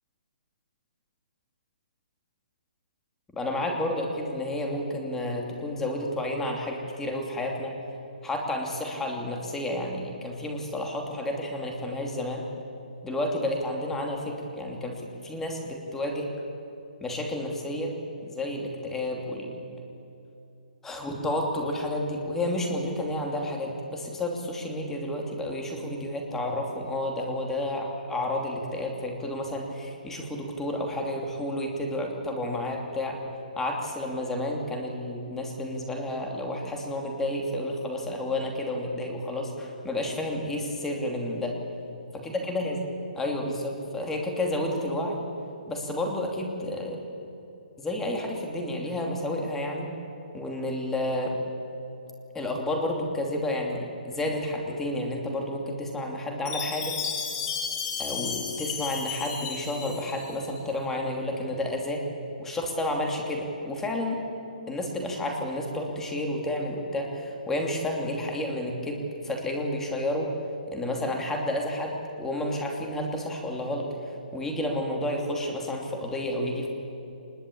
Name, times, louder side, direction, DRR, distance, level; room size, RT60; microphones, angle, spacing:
voice 1, 3.3-7.7 8.2-12.4 13.0-15.0 15.2-16.3 17.0-17.9 18.2-19.6 20.8-33.2 33.6-41.5 42.1-42.8 43.2-45.2 45.7-47.0 47.8-49.9 50.3-51.4 52.3-57.0 58.0-62.0 62.4-64.2 64.7-70.3 70.7-73.9 74.3-76.7, left 1 dB, 5° left, 1 dB, 2.8 m, -31 dB
Chime, 56.5-60.6, left 6 dB, 25° left, 3.5 m, -33 dB
24.0 x 21.0 x 8.5 m, 2.9 s
hypercardioid pair, 160°, 5 cm